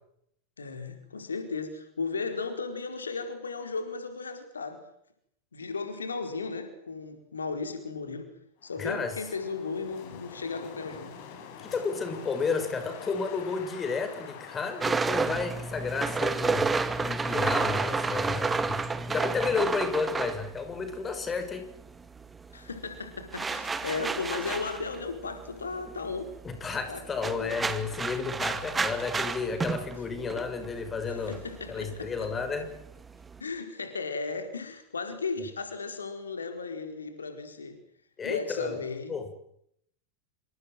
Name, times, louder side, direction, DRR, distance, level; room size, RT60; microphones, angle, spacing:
voice 1, 0.6-4.8 5.5-8.3 8.6-11.1 22.5-26.3 26.9-27.6 31.1-32.3 33.4-37.8 38.2-39.2, left 4 dB, 75° left, 7 dB, 4.6 m, -35 dB
Wind, 8.6-18.5, left 6 dB, 45° left, 6.6 m, -47 dB
voice 2, 8.8-9.1 11.6-16.7 17.0-18.8 19.1-21.6 26.4-31.4 31.7-32.7 38.2-38.8 39.1-39.3, left 4 dB, 20° left, 8 dB, 6.5 m, -32 dB
sound 1, 14.8-21.5 21.8-33.4, right 4 dB, 15° right, 2.1 m, -31 dB
27.5 x 26.5 x 7.8 m, 0.73 s
figure-of-eight pair, 90°, 0 cm